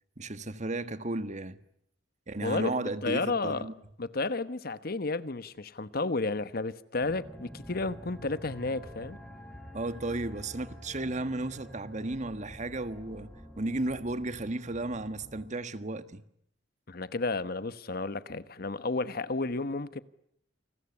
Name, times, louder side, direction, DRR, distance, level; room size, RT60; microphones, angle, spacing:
voice 1, 0.2-1.6 2.3-3.7 9.7-13.3 13.6-16.2, right 2 dB, 40° right, 1.5 m, -34 dB
voice 2, 2.4-3.7 4.0-9.2 16.9-20.0, left 3 dB, 55° left, 1.1 m, -32 dB
sound 1, 7.0-15.5, equal, 5° left, 5.3 m, -48 dB
29.0 x 20.5 x 9.9 m
head